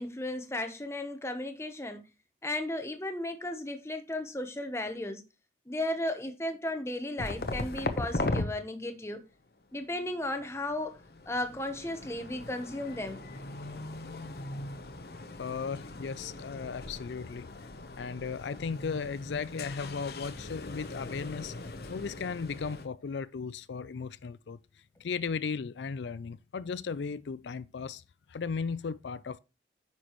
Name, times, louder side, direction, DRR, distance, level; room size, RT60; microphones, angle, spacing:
voice 1, 0.0-2.0 2.4-5.2 5.7-9.3 9.7-11.0 11.3-13.2, left 1 dB, 15° left, 1.0 m, -35 dB
sound 1, 7.2-8.5 10.1-22.9, left 2 dB, 60° left, 0.9 m, -39 dB
voice 2, 15.4-17.7 18.0-21.5 21.9-24.6 25.0-28.0 28.3-29.4, left 5 dB, 85° left, 0.4 m, -36 dB
9.6 x 6.1 x 3.1 m
head